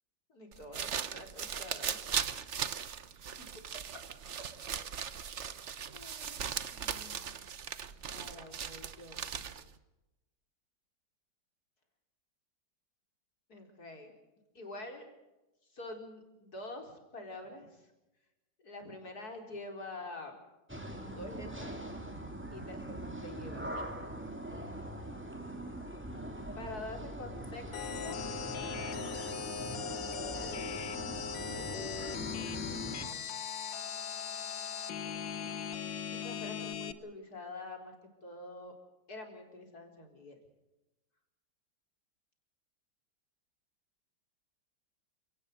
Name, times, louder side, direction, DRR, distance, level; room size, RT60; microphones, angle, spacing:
voice 1, 0.3-2.0 3.4-3.5 5.1-5.3 5.9-7.4 8.0-9.4 13.5-14.1 14.5-15.0 15.6-17.9 18.6-20.4 21.0-21.7 22.5-23.9 26.6-28.2 29.6-32.6 32.9-33.7 36.0-37.9 38.2-38.7 39.1-40.4, left 2 dB, 55° left, 3 dB, 4.8 m, -47 dB
sound 1, 0.5-9.8, right 7 dB, 45° right, 1.1 m, -38 dB
sound 2, 20.7-33.1, right 1 dB, 5° right, 3.0 m, -42 dB
sound 3, 27.7-36.9, left 7 dB, 85° left, 1.8 m, -39 dB
29.0 x 18.0 x 6.6 m, 1.0 s
omnidirectional pair, 1.9 m